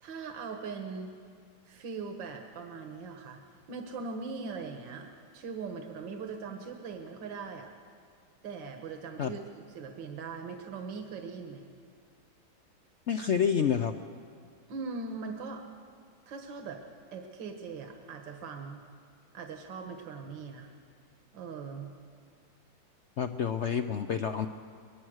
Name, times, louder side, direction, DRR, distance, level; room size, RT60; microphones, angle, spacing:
voice 1, 0.0-1.1 1.6-3.4 3.7-7.7 8.4-11.7 14.7-15.6 16.3-16.8 17.1-18.8 19.3-20.7 21.3-21.9, right 4 dB, 80° right, 4 dB, 2.0 m, -40 dB
voice 2, 13.1-13.9 23.2-24.5, left 7 dB, 80° left, 8 dB, 0.6 m, -28 dB
24.0 x 20.5 x 6.4 m, 2.2 s
omnidirectional pair, 2.0 m